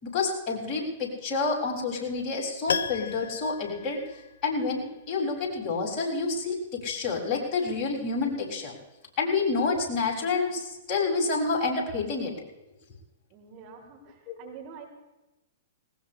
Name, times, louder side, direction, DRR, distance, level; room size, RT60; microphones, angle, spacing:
voice 1, 0.0-4.0 4.4-8.7 9.2-12.3 14.3-14.4, left 4 dB, 35° left, -2 dB, 7.1 m, -28 dB
Piano, 2.7-4.8 5.1-5.2, left 7 dB, 80° left, 0.6 m, -34 dB
voice 2, 13.3-14.8, right 7 dB, 40° right, 2 dB, 4.3 m, -46 dB
21.0 x 20.0 x 3.4 m, 0.99 s
hypercardioid pair, 120°, 0 cm